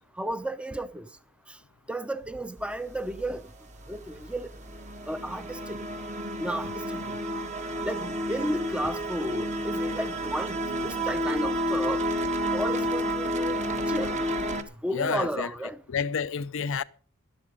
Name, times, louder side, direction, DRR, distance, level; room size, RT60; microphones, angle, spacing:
voice 1, 0.2-1.1 1.5-1.6 1.9-3.4 3.9-4.5 5.1-5.8 6.4-7.2 7.8-12.0 12.5-14.1 14.8-15.8, right 1 dB, 5° right, 0.7 m, -33 dB
sound 1, 2.6-14.6, equal, 35° right, 1.4 m, -31 dB
voice 2, 14.9-15.5 15.9-16.8, left 6 dB, 65° left, 0.5 m, -29 dB
12.5 x 11.5 x 5.3 m
head